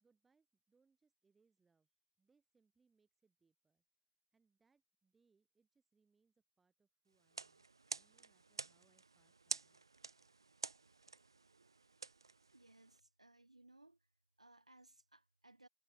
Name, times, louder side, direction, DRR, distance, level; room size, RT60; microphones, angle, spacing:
voice 1, 0.0-7.7 7.9-9.8, right 4 dB, ahead, 2.7 m, -80 dB
sound 1, 7.2-13.0, right 4 dB, 45° right, 0.4 m, -49 dB
voice 2, 12.5-14.1 14.4-15.7, right 2 dB, 80° right, 3.2 m, -64 dB
figure-of-eight pair, 170°, 3 cm